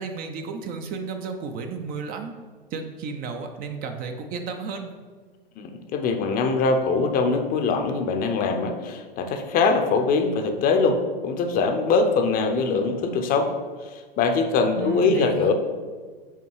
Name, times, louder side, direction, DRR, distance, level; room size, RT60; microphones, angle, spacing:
voice 1, 0.0-2.3 2.7-4.9 14.8-15.5, right 5 dB, 30° right, 6 dB, 0.6 m, -33 dB
voice 2, 5.6-13.5 13.8-15.5, left 4 dB, 30° left, 6 dB, 0.7 m, -22 dB
5.6 x 4.4 x 4.7 m, 1.5 s
figure-of-eight pair, 100°, 29 cm